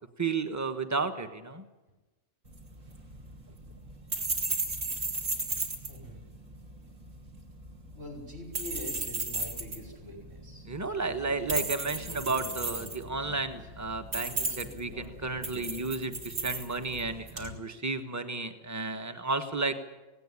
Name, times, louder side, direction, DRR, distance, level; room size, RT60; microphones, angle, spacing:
voice 1, 0.2-1.6 10.7-19.7, right 3 dB, 15° right, 7 dB, 1.2 m, -33 dB
sound 1, 2.5-17.5, right 2 dB, 60° right, 3.1 m, -36 dB
voice 2, 5.9-6.2 7.9-13.7 14.3-15.8, left 1 dB, 45° right, 1 dB, 5.6 m, -46 dB
18.0 x 18.0 x 9.9 m, 1.1 s
omnidirectional pair, 1.5 m